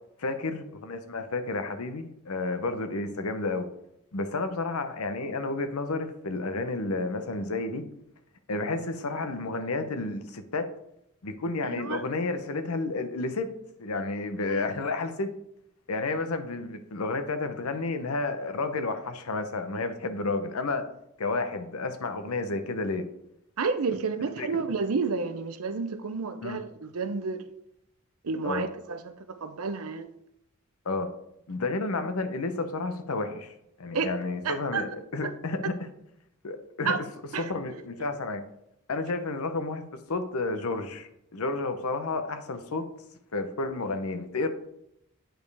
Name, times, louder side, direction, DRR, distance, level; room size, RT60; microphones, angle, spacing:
voice 1, 0.2-3.7 4.1-7.8 8.5-10.7 11.2-13.5 13.8-15.3 15.9-20.8 21.2-23.0 24.4-24.5 26.4-26.6 28.4-28.7 30.8-31.1 31.5-35.8 36.4-37.0 37.5-38.4 38.9-42.9 43.3-44.5, left 3 dB, 90° left, 9 dB, 0.8 m, -31 dB
voice 2, 11.6-12.0 14.5-14.6 23.6-27.5 28.2-30.1 33.9-34.1 34.4-34.8 35.2-35.3 36.9-37.0 37.3-37.5, right 4 dB, 85° right, 10 dB, 0.6 m, -30 dB
8.8 x 5.3 x 3.4 m, 0.80 s
head